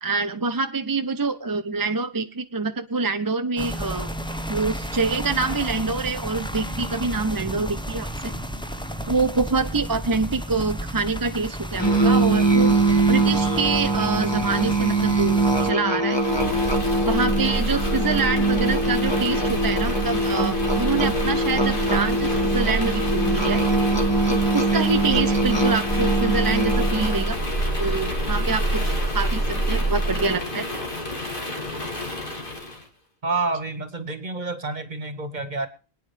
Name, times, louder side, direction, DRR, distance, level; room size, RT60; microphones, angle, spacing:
voice 1, 0.0-4.1 4.5-8.3 9.1-12.7 13.1-16.6 17.0-23.6 24.3-27.4 27.8-30.7, right 4 dB, 25° right, 8 dB, 0.7 m, -26 dB
sound 1, 3.6-15.7, equal, 5° left, 1.0 m, -32 dB
Musical instrument, 11.8-27.3, right 2 dB, 25° left, 2.1 m, -22 dB
sound 2, 16.1-32.8, right 1 dB, 55° left, 3.1 m, -27 dB
voice 2, 33.2-35.7, right 3 dB, 45° right, 11 dB, 1.7 m, -28 dB
25.0 x 9.5 x 3.3 m, 0.37 s
omnidirectional pair, 1.1 m